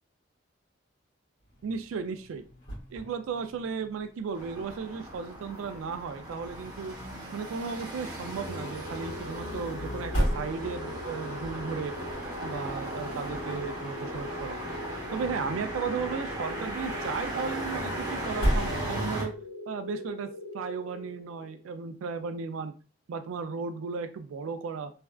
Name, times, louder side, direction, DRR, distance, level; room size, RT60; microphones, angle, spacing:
sound 1, 1.4-19.5, equal, 65° left, 1.5 m, -38 dB
voice 1, 1.6-2.4 2.9-6.9 7.3-11.9 12.4-14.6 15.1-19.3 19.7-22.7 23.1-24.9, right 5 dB, 85° right, 8 dB, 0.3 m, -35 dB
sound 2, 4.3-19.3, right 1 dB, 20° right, 0.9 m, -37 dB
sound 3, 8.5-21.6, left 2 dB, 85° left, 0.5 m, -42 dB
3.2 x 2.4 x 2.2 m, 0.36 s
head